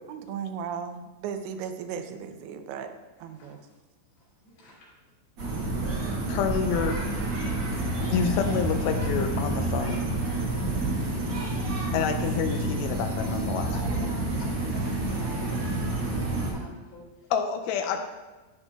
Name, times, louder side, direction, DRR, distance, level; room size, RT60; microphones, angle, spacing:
voice 1, 0.1-2.9 3.2-3.6 13.9-14.3, right 7 dB, 85° right, 7 dB, 2.9 m, -36 dB
voice 2, 4.4-4.9 13.7-17.1, left 1 dB, 60° left, -6 dB, 4.3 m, -46 dB
sound 1, 5.4-16.5, right 2 dB, 65° right, 1.4 m, -29 dB
voice 3, 6.3-7.0 8.1-10.1 11.9-13.7 17.3-18.0, left 7 dB, 85° left, 5 dB, 2.7 m, -28 dB
12.5 x 6.0 x 2.3 m, 1.2 s
omnidirectional pair, 5.0 m